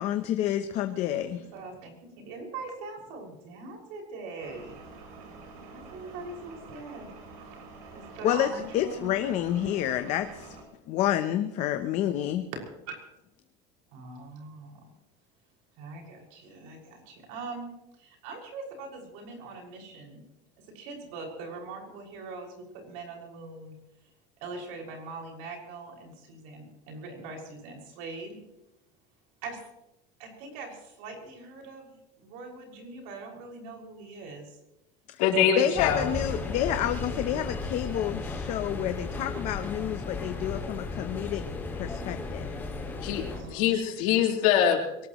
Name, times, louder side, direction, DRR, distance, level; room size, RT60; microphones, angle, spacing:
voice 1, 0.0-1.4 8.2-10.5 10.9-12.4 35.6-41.4 41.7-42.6, left 11 dB, 40° left, 8 dB, 0.9 m, -29 dB
voice 2, 1.1-4.7 5.5-7.1 7.9-9.1 13.9-14.8 15.8-17.7 18.0-20.2 20.7-23.8 24.4-28.4 29.4-29.6 30.2-34.6 43.3-43.7, right 3 dB, 70° right, 1 dB, 6.2 m, -42 dB
sound 1, 4.4-10.6, right 3 dB, 90° right, 6.2 m, -47 dB
voice 3, 35.2-36.1 43.0-45.1, left 8 dB, 80° left, 0 dB, 4.1 m, -24 dB
sound 2, 35.8-43.4, left 3 dB, 10° left, 2.3 m, -35 dB
23.0 x 18.5 x 3.1 m, 0.90 s
cardioid pair, 180°, 17 cm